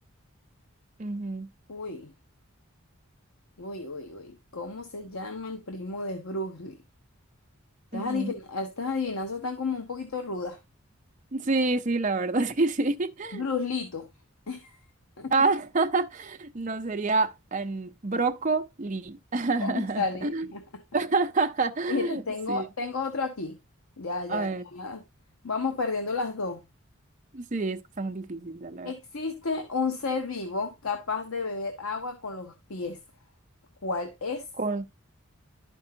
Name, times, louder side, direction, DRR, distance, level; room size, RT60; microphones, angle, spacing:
voice 1, 1.0-1.5 7.9-8.3 11.3-13.4 15.3-20.5 20.9-22.2 22.5-22.7 24.3-24.6 27.3-28.9 34.6-34.8, right 3 dB, 35° right, 0.6 m, -28 dB
voice 2, 1.7-2.1 3.6-6.8 7.9-10.6 13.3-14.1 14.5-14.8 15.2-15.3 19.6-20.8 21.9-23.6 24.0-25.0 25.4-26.6 28.8-33.0 33.8-34.5, left 4 dB, 70° left, 0.9 m, -32 dB
11.5 x 5.3 x 2.7 m
head